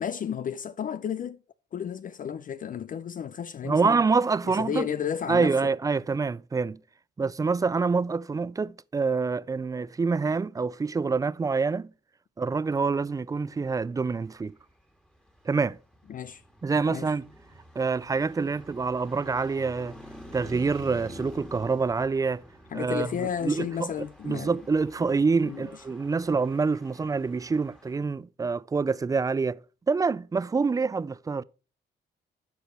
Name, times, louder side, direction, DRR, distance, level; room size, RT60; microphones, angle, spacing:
voice 1, 0.0-1.4 1.7-4.0 4.4-5.7 16.1-16.4 16.9-17.1 22.7-24.6 25.4-25.7, left 8 dB, 45° left, 0.5 m, -32 dB
voice 2, 3.6-4.9 5.3-6.8 7.2-11.9 12.4-14.5 15.5-15.8 16.6-17.3 17.8-20.0 20.3-22.4 22.7-23.9 24.2-29.6 29.9-31.4, right 4 dB, 15° right, 0.3 m, -26 dB
Traffic noise roadway noise, 14.3-28.0, equal, 5° left, 1.8 m, -49 dB
11.5 x 4.6 x 4.3 m
cardioid pair, 90°, 20 cm